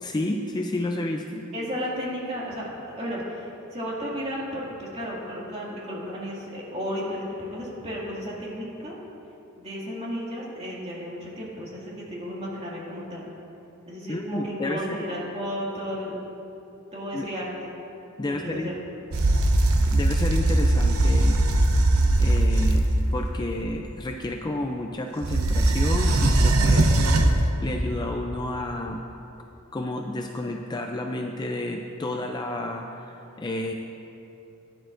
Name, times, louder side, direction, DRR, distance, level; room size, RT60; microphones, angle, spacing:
voice 1, 0.0-1.4 14.1-15.0 17.1-17.3 18.2-18.7 19.9-21.4 22.2-22.9 23.1-29.0 29.7-33.7, left 1 dB, 20° left, 3 dB, 0.4 m, -31 dB
voice 2, 1.5-3.5 3.7-9.0 9.6-13.3 13.9-16.2 16.9-17.7 18.2-18.7, equal, 30° right, -5 dB, 2.1 m, -33 dB
sound 1, 19.1-23.3 25.2-27.5, right 1 dB, 90° right, 0.7 m, -20 dB
15.0 x 10.0 x 2.6 m, 2.9 s
head